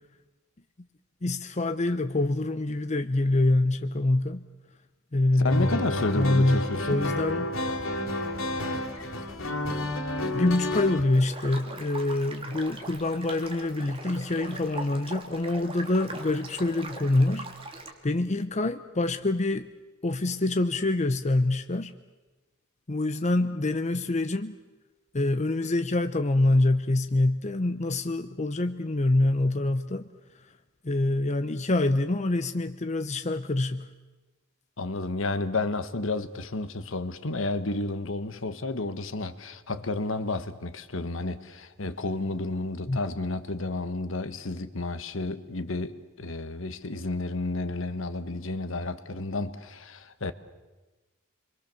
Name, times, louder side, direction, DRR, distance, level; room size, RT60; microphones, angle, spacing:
voice 1, 1.2-4.4 5.1-5.8 6.1-6.6 6.9-7.5 10.3-17.5 18.0-19.7 20.0-21.9 22.9-24.5 25.1-30.0 30.8-33.9 42.9-43.0, left 2 dB, 35° left, 0.8 m, -25 dB
voice 2, 5.4-7.0 34.8-50.3, left 2 dB, 70° left, 1.4 m, -31 dB
sound 1, 5.5-11.0, left 1 dB, 85° left, 3.3 m, -30 dB
sound 2, 11.1-17.9, right 2 dB, 30° right, 2.7 m, -41 dB
28.0 x 23.0 x 7.0 m
head